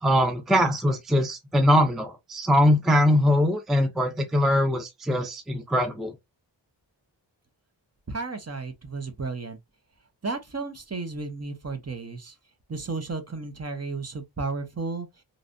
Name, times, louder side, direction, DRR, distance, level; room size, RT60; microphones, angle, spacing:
voice 1, 0.0-6.1, equal, ahead, 0.5 m, -22 dB
voice 2, 8.1-9.6 10.2-12.3 12.7-15.1, right 3 dB, 35° right, 0.8 m, -33 dB
3.1 x 2.6 x 2.6 m
wide cardioid pair, 60°, 45 cm